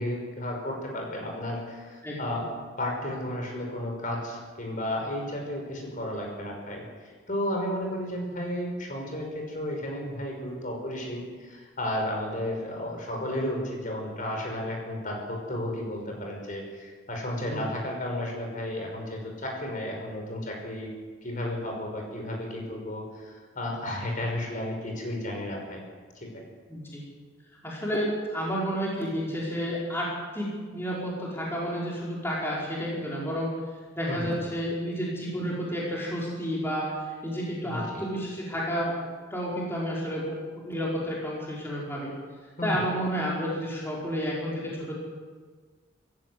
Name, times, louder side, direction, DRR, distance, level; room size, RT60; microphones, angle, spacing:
voice 1, 0.0-2.4 2.8-20.9 21.2-25.8 26.2-26.3 34.1-34.3 37.6-38.0 42.6-42.8, left 1 dB, 40° left, 1 dB, 5.6 m, -33 dB
voice 2, 2.0-2.4 17.4-17.7 26.7-27.0 27.6-33.5 33.9-39.0 39.3-42.1 42.6-44.9, equal, 10° left, -5 dB, 5.2 m, -31 dB
27.0 x 15.0 x 7.9 m, 1.5 s
head